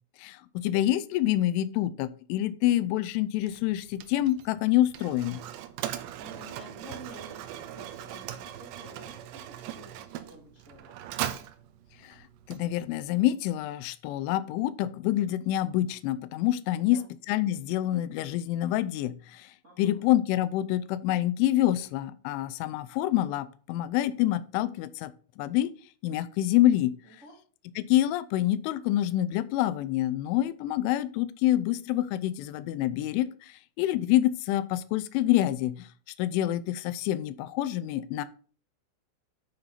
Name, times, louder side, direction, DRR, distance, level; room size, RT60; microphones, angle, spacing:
voice 1, 0.2-5.4 12.0-17.0 17.3-19.5 19.8-25.7 26.0-26.9 27.8-35.9 36.2-38.3, left 13 dB, 85° left, 14 dB, 2.9 m, -27 dB
Mechanisms, 3.4-13.1, right 12 dB, 85° right, 2.5 m, -40 dB
voice 2, 6.2-11.0 16.7-17.0 19.6-20.0 27.0-27.3, right 1 dB, 30° right, -4 dB, 1.4 m, -50 dB
9.6 x 5.8 x 4.0 m, 0.40 s
omnidirectional pair, 5.9 m